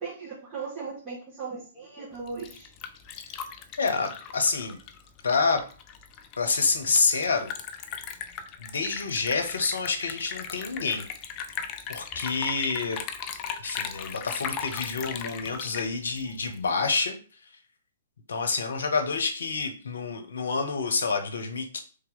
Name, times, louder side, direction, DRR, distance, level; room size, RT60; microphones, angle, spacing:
voice 1, 0.0-2.7, right 5 dB, 20° right, -10 dB, 1.7 m, -37 dB
Liquid, 2.1-16.7, left 7 dB, 30° left, 0.5 m, -38 dB
voice 2, 3.8-4.8 5.2-5.6 6.4-7.5 8.6-11.0 11.9-13.0 13.6-17.2 18.3-21.8, left 4 dB, 70° left, 6 dB, 0.8 m, -28 dB
3.2 x 2.9 x 3.9 m, 0.40 s
figure-of-eight pair, 120°, 0 cm